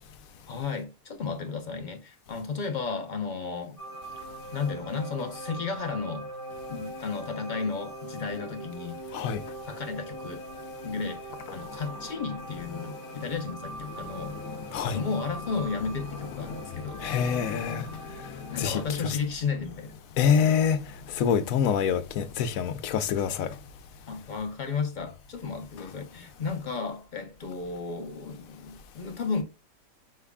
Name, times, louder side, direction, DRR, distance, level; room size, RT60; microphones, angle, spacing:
voice 1, 0.5-3.8 4.5-6.3 6.7-9.0 9.7-10.4 10.8-14.3 14.8-17.0 18.5-19.9 20.4-20.6 24.1-29.4, left 5 dB, 50° left, 0.5 m, -33 dB
sound 1, 3.8-18.8, right 1 dB, 25° left, 2.0 m, -42 dB
voice 2, 9.1-9.4 11.6-11.8 12.8-12.9 14.0-15.0 16.1-19.2 20.2-23.6, left 7 dB, 75° left, 1.0 m, -28 dB
5.5 x 3.5 x 2.2 m
omnidirectional pair, 1.5 m